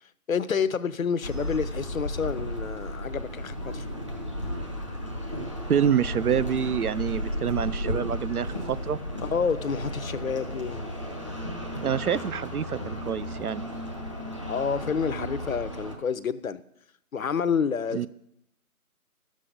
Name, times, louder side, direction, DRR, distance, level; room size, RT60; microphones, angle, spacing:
voice 1, 0.3-3.9 9.2-10.8 14.5-16.6 17.1-18.1, left 6 dB, 65° left, 14 dB, 0.7 m, -29 dB
sound 1, 1.2-16.0, equal, 20° right, 0.7 m, -34 dB
voice 2, 5.7-9.0 11.8-13.7 17.9-18.1, right 8 dB, 75° right, 17 dB, 0.6 m, -27 dB
12.5 x 7.5 x 5.1 m, 0.78 s
figure-of-eight pair, 165°, 45 cm